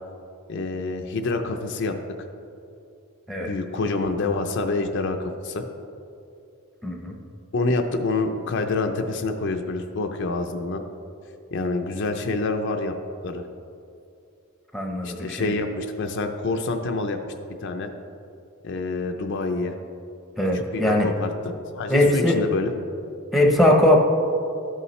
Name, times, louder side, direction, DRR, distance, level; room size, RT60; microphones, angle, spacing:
voice 1, 0.5-1.9 3.5-5.6 7.5-10.8 11.5-12.9 13.2-13.5 15.0-17.2 17.6-17.9 18.6-19.7 20.5-22.7, left 3 dB, 55° left, 5 dB, 0.5 m, -27 dB
voice 2, 6.8-7.2 14.7-15.5 20.4-21.1 21.9-22.4 23.3-24.0, left 1 dB, ahead, 0 dB, 0.8 m, -20 dB
13.0 x 5.6 x 3.2 m, 2.6 s
head